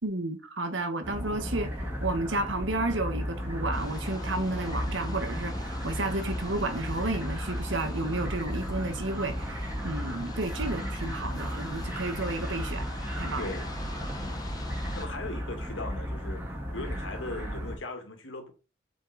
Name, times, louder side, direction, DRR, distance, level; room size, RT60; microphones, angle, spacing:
voice 1, 0.0-1.7 2.0-12.9 13.2-13.6, right 2 dB, 80° right, 1.6 m, -32 dB
sound 1, 1.0-17.8, equal, 10° right, 2.3 m, -34 dB
sound 2, 3.7-15.1, left 2 dB, 20° left, 1.3 m, -44 dB
voice 2, 14.1-14.5 14.9-18.5, left 2 dB, 85° left, 2.1 m, -39 dB
7.5 x 5.0 x 4.3 m
head